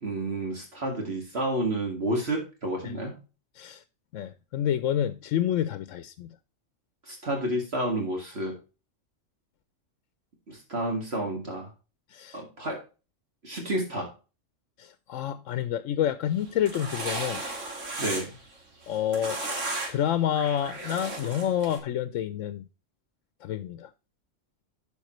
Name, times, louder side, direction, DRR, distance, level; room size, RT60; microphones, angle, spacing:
voice 1, 0.0-3.2 7.1-8.6 10.5-11.7 12.3-12.8 13.4-14.1 18.0-18.4, right 1 dB, 55° right, 2.2 m, -30 dB
voice 2, 4.1-6.3 12.1-12.4 14.8-17.4 18.9-19.4 19.9-22.6 23.4-23.9, left 10 dB, 80° left, 0.9 m, -28 dB
sound 1, 16.4-18.4 18.8-20.0 20.3-21.8, right 2 dB, 75° right, 2.4 m, -35 dB
11.5 x 5.1 x 3.0 m
omnidirectional pair, 1.3 m